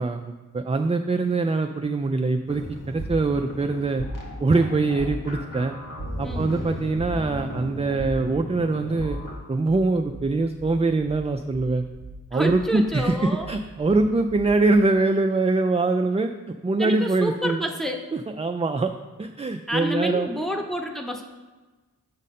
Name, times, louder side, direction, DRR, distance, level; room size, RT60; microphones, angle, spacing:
voice 1, 0.0-4.0 4.4-5.7 6.2-9.2 9.5-11.8 12.3-17.6 18.1-18.9 19.2-20.3, right 3 dB, 20° right, 6 dB, 0.3 m, -23 dB
sound 1, 2.5-9.3, equal, 60° left, 1.7 m, -35 dB
voice 2, 6.2-6.5 12.3-13.5 16.8-18.0 19.7-21.2, equal, ahead, 2 dB, 0.9 m, -28 dB
sound 2, 9.7-14.8, right 2 dB, 35° right, 1.1 m, -42 dB
7.3 x 5.2 x 4.2 m, 1.2 s
cardioid pair, 55°, 36 cm